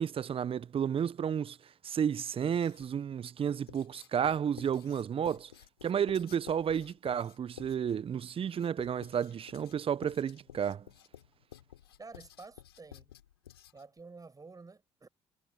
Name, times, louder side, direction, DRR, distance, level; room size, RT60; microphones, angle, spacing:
voice 1, 0.0-1.6 1.8-5.5 5.8-10.8, right 8 dB, 45° right, 1.1 m, -32 dB
Writing, 2.3-3.0 3.7-14.0, left 11 dB, 85° left, 5.0 m, -53 dB
voice 2, 12.0-13.1 13.7-15.1, right 4 dB, 30° right, 6.0 m, -50 dB
hypercardioid pair, 45°, 13 cm